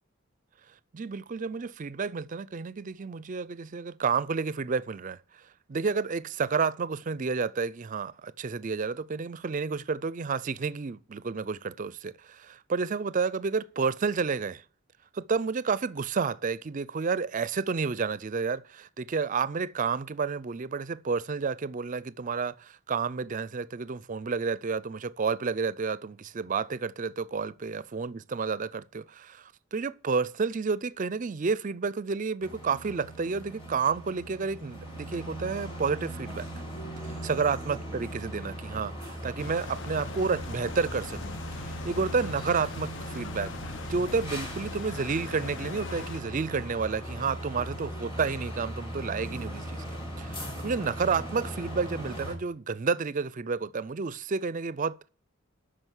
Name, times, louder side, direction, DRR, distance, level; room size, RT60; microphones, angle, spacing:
voice 1, 0.9-5.2 5.7-14.6 15.1-36.5 37.0-49.8 50.2-55.1, right 5 dB, 40° right, 0.4 m, -30 dB
sound 1, 32.4-52.4, right 1 dB, 25° left, 2.6 m, -39 dB
sound 2, 39.4-46.2, left 6 dB, 60° left, 0.4 m, -42 dB
9.1 x 6.2 x 8.0 m
head